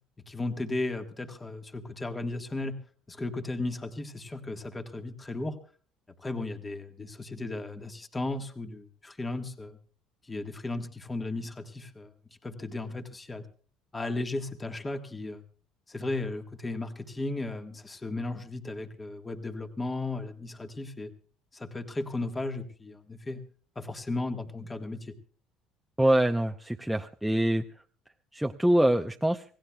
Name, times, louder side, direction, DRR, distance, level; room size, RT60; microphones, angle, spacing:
voice 1, 0.3-2.8 3.1-5.6 6.2-9.8 10.2-12.1 12.4-13.4 13.9-15.4 15.9-21.1 21.5-23.4 23.7-25.1, left 2 dB, 20° left, 6 dB, 1.5 m, -35 dB
voice 2, 26.0-27.6 28.3-29.4, right 1 dB, 5° right, 4 dB, 0.6 m, -24 dB
26.5 x 17.5 x 2.3 m, 0.42 s
cardioid pair, 105°, 0 cm